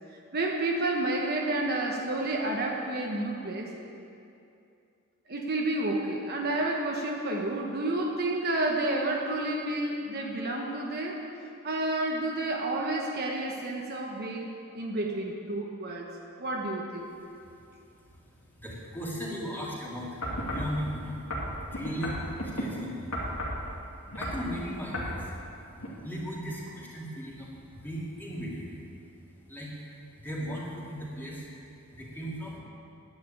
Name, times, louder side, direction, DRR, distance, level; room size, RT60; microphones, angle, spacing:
voice 1, 0.3-3.7 5.3-11.2 11.6-16.1 16.4-17.1, right 2 dB, 45° right, 0 dB, 1.2 m, -30 dB
voice 2, 18.1-21.2 21.6-23.1 24.2-25.3 25.6-28.8 29.5-29.7 30.2-31.5 31.9-32.6, equal, 10° left, -5 dB, 2.5 m, -37 dB
sound 1, 20.2-20.7 21.3-22.7 23.1-23.6 24.1-24.5 24.9-25.2 25.8-25.9, left 1 dB, 75° left, 2.6 m, -33 dB
10.5 x 9.3 x 9.1 m, 2.6 s
head